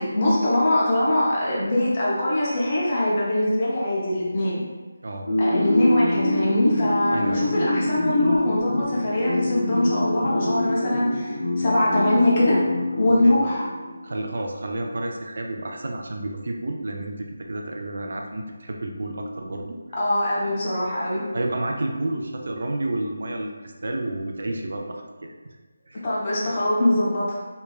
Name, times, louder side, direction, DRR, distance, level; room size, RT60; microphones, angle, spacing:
voice 1, 0.0-4.6 5.4-12.6 13.0-13.6 20.0-21.2 26.0-27.3, left 1 dB, 20° left, -7 dB, 0.5 m, -22 dB
sound 1, 5.3-14.0, left 1 dB, 75° left, 0.7 m, -25 dB
voice 2, 7.1-7.5 13.2-13.4 14.0-19.8 21.3-23.5 23.8-25.0 25.9-26.0, right 1 dB, 50° right, 2 dB, 0.3 m, -30 dB
2.9 x 2.2 x 2.3 m, 1.3 s
figure-of-eight pair, 180°, 0 cm